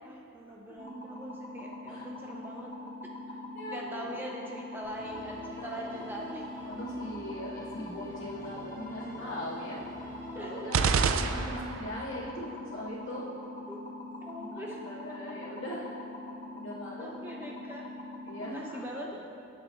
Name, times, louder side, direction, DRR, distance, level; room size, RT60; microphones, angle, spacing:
voice 1, 0.0-2.7 3.7-6.5 10.3-11.4 13.7-13.8 14.2-15.4 17.0-17.9 18.4-19.2, equal, 10° right, -1 dB, 0.6 m, -42 dB
sound 1, 0.8-18.6, left 2 dB, 35° left, 0.8 m, -43 dB
voice 2, 3.5-4.2 5.5-5.8 6.7-9.8 10.4-13.3 14.3-15.9 16.5-17.2 18.3-18.8, left 1 dB, 65° left, -6 dB, 2.0 m, -40 dB
Musical instrument, 4.8-11.2, left 1 dB, 15° left, 1.8 m, -48 dB
sound 2, 10.7-12.0, right 5 dB, 75° right, 0.4 m, -27 dB
17.0 x 8.1 x 2.4 m, 2.7 s
head